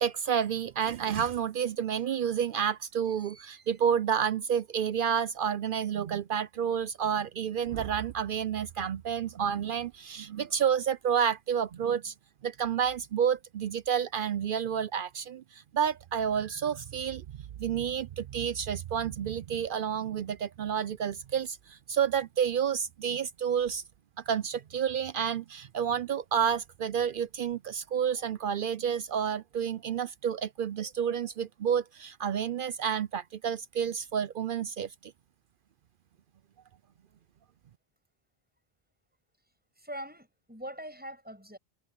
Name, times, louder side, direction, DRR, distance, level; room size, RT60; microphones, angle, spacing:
voice 1, 0.0-12.1 12.4-17.2 17.6-23.8 24.3-35.1, right 8 dB, 60° right, 0.7 m, -30 dB
voice 2, 39.8-41.6, equal, 10° right, 7.6 m, -42 dB
omnidirectional pair, 1.0 m